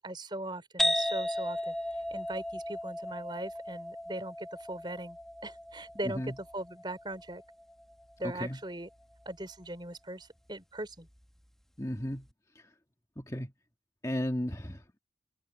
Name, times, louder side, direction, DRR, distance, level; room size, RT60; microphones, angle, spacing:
voice 1, 0.0-1.7 2.1-5.2 5.4-7.4 8.2-8.9 9.3-11.1, right 1 dB, 25° right, 4.2 m, -40 dB
sound 1, 0.8-8.2, equal, ahead, 1.0 m, -35 dB
voice 2, 8.2-8.6 11.8-12.3 12.5-12.7 13.2-13.5 14.0-14.8, equal, 20° left, 1.6 m, -34 dB
open air
head